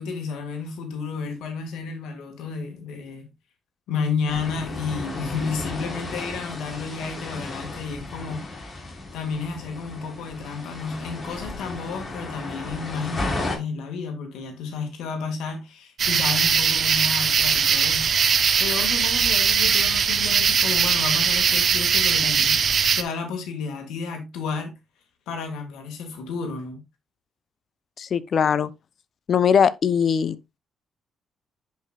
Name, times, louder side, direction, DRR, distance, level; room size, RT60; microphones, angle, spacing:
voice 1, 0.0-3.3 3.9-8.5 9.1-18.1 18.6-22.6 23.0-24.7 25.3-26.8, left 5 dB, 85° left, 2.1 m, -31 dB
sound 1, 4.3-13.6, left 2 dB, 30° left, 3.9 m, -34 dB
sound 2, 16.0-23.0, right 6 dB, 50° right, 1.0 m, -20 dB
voice 2, 28.0-28.7 29.3-30.6, left 7 dB, 55° left, 0.7 m, -21 dB
10.5 x 5.3 x 2.4 m
cardioid pair, 90°, 0 cm